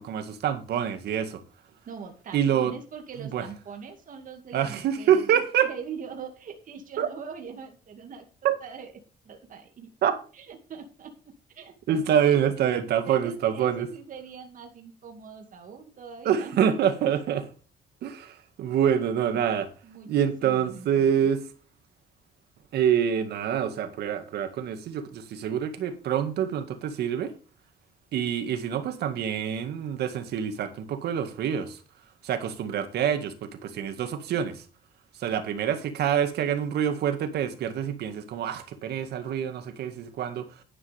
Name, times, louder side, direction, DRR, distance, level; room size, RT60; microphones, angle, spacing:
voice 1, 0.0-1.4 2.3-2.7 3.2-3.5 4.5-5.7 7.0-7.1 8.4-8.6 10.0-10.2 11.9-13.9 16.2-17.5 18.0-19.7 20.1-21.4 22.7-27.3 28.1-31.8 32.2-34.6 35.1-40.6, right 9 dB, 80° right, 2.0 m, -26 dB
voice 2, 1.9-8.9 9.2-9.9 10.3-11.1 11.5-12.0 12.2-12.4 13.0-16.6 19.8-21.3, right 6 dB, 55° right, 2.3 m, -42 dB
11.0 x 10.5 x 3.5 m
cardioid pair, 110°, 17 cm